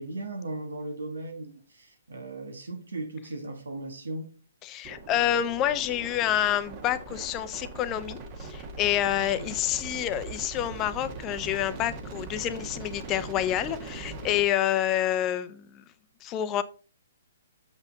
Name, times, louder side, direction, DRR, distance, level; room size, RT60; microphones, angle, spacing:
voice 1, 0.0-4.3 9.1-9.6, right 2 dB, 80° right, 5 dB, 1.4 m, -37 dB
voice 2, 4.6-15.8 16.2-16.6, left 12 dB, 25° left, 12 dB, 0.6 m, -28 dB
sound 1, 4.8-14.4, right 3 dB, 35° right, 1.5 m, -41 dB
7.1 x 5.6 x 3.9 m, 0.37 s
hypercardioid pair, 135°, 0 cm